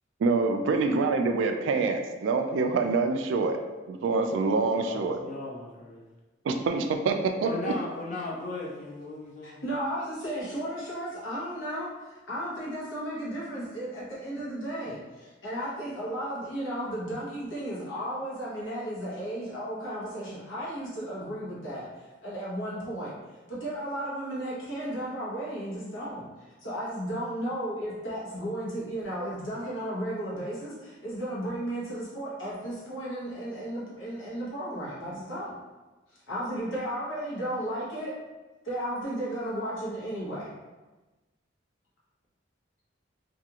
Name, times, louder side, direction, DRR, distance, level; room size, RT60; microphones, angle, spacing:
voice 1, 0.2-3.6 3.9-5.2 6.4-7.7, right 4 dB, 80° right, 6 dB, 0.3 m, -26 dB
voice 2, 4.6-6.1 7.4-9.6, left 2 dB, 40° left, -3 dB, 0.4 m, -37 dB
voice 3, 9.4-21.9 22.2-23.1 23.5-26.3 26.6-35.5 36.3-38.2 38.6-40.5, right 1 dB, 85° left, -7 dB, 1.0 m, -34 dB
2.6 x 2.4 x 2.8 m, 1.2 s
head